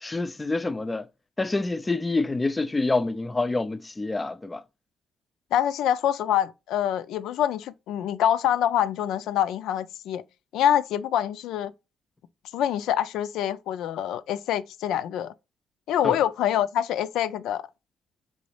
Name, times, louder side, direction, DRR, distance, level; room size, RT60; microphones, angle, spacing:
voice 1, 0.0-1.1 1.4-4.6 16.0-16.2, left 3 dB, 20° left, 0.4 m, -27 dB
voice 2, 5.5-10.2 10.5-11.7 12.5-15.3 15.9-17.6, left 10 dB, 85° left, 0.4 m, -25 dB
4.1 x 3.8 x 3.2 m
cardioid pair, 90°, 0 cm